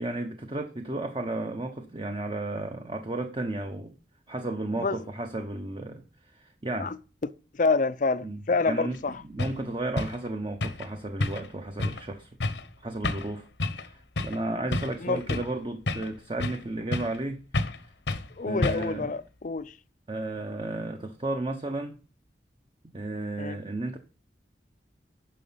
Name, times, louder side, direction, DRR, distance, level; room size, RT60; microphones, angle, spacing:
voice 1, 0.0-3.9 4.3-6.9 8.2-8.4 8.7-12.4 12.8-13.5 13.8-17.4 18.5-19.2 20.1-22.0 22.9-24.0, right 2 dB, 30° right, 0.9 m, -33 dB
voice 2, 7.2-9.1 15.0-15.4 18.4-19.7 23.4-23.6, left 4 dB, 45° left, 0.5 m, -28 dB
sound 1, 8.9-9.0 9.4-9.6 10.0-10.2 10.6-10.9 11.2-11.5 11.8-12.0 12.4-12.7 13.0-13.3 13.6-13.9 14.2-14.4 14.7-15.5 15.9-16.6 16.9-17.2 17.5-17.8 18.1-18.3 18.6-19.0, left 2 dB, 80° left, 1.0 m, -30 dB
10.0 x 6.3 x 5.6 m
head